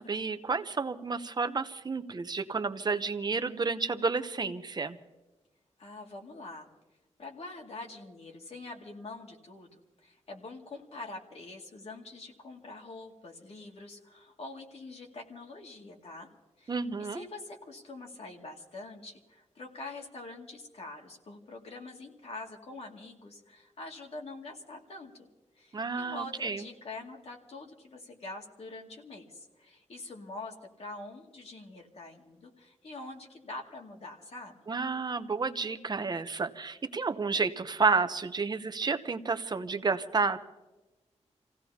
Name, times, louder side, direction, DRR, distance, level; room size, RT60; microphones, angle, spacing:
voice 1, 0.0-5.0 16.7-17.2 25.7-26.7 34.7-40.4, right 4 dB, 35° right, 10 dB, 0.8 m, -31 dB
voice 2, 5.8-6.7 7.2-16.3 16.6-25.3 25.6-34.5, left 2 dB, 60° left, 1 dB, 2.3 m, -45 dB
29.0 x 16.5 x 2.9 m, 1.1 s
wide cardioid pair, 155°, 12 cm